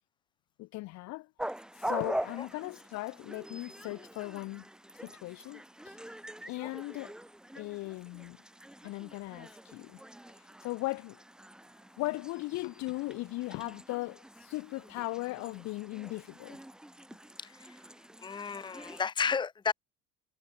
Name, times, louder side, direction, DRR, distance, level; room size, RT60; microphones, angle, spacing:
voice 1, 0.6-1.3 1.8-4.7 5.0-6.0 6.5-7.1 7.6-8.4 8.8-10.0 10.6-11.2 12.0-16.6, left 21 dB, 60° left, 2.7 m, -38 dB
sound 1, 1.4-19.0, right 1 dB, ahead, 2.0 m, -44 dB
voice 2, 17.4-17.8 18.2-19.7, left 6 dB, 15° left, 1.2 m, -33 dB
cardioid pair, 145°, 32 cm